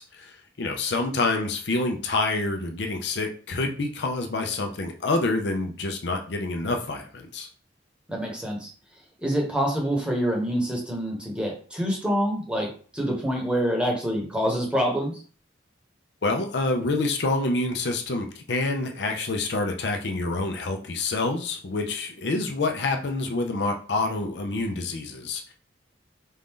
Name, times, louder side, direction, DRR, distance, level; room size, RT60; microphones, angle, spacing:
voice 1, 0.0-7.5 16.2-25.5, left 2 dB, 65° left, 3 dB, 0.6 m, -27 dB
voice 2, 8.1-8.7 9.2-12.7 12.9-15.2, equal, 5° right, -1 dB, 1.0 m, -26 dB
4.3 x 2.6 x 3.7 m, 0.41 s
head